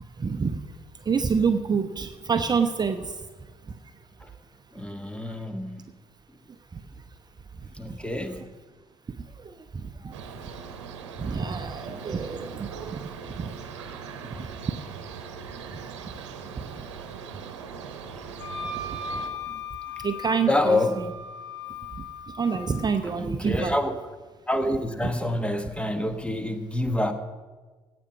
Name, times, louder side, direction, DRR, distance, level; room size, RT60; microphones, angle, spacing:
voice 1, 0.2-0.6 1.1-3.1 10.0-10.1 11.2-13.0 13.4-13.5 14.3-14.5 18.6-19.2 20.0-20.8 22.4-23.7, right 5 dB, 25° right, 0.7 m, -27 dB
voice 2, 4.7-5.9 7.7-8.5 20.5-21.1 23.0-24.0 24.5-27.1, left 1 dB, 5° left, 1.2 m, -27 dB
sound 1, 10.1-19.3, right 6 dB, 75° right, 1.0 m, -40 dB
Wind instrument woodwind instrument, 18.4-22.9, left 3 dB, 80° left, 2.4 m, -37 dB
17.0 x 6.1 x 6.1 m
figure-of-eight pair, 50°, 15 cm